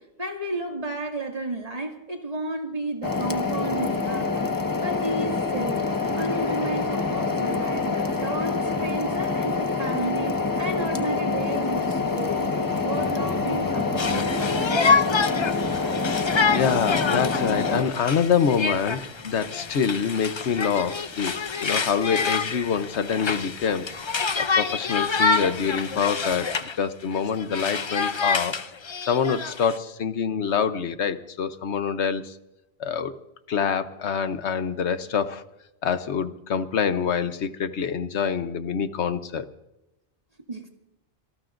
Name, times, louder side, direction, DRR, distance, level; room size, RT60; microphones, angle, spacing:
voice 1, 0.0-4.5 4.8-12.5 12.8-15.0 40.5-40.7, right 2 dB, 35° right, 1 dB, 2.4 m, -32 dB
sound 1, 3.0-17.8, left 4 dB, 20° left, 1.2 m, -26 dB
sound 2, 11.0-15.5, equal, 65° right, 3.1 m, -43 dB
Conversation, 14.0-26.8 27.1-29.8, left 4 dB, 35° left, 0.5 m, -27 dB
voice 2, 16.5-23.9 24.4-28.6 29.1-32.4 32.8-33.1 33.5-35.4 35.8-39.5, left 7 dB, 80° left, 11 dB, 1.2 m, -26 dB
26.5 x 19.0 x 2.6 m, 0.94 s
omnidirectional pair, 1.1 m